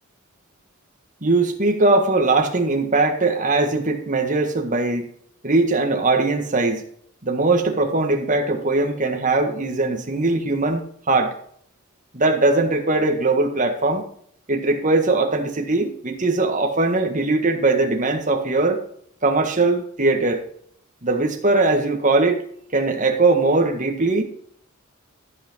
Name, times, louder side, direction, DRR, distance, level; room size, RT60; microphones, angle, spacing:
voice 1, 1.2-5.1 5.4-6.8 7.2-11.3 12.1-14.0 14.5-18.8 19.2-20.4 21.0-22.4 22.7-24.2, right 2 dB, 35° right, 3 dB, 1.6 m, -20 dB
14.0 x 5.9 x 4.4 m, 0.62 s
head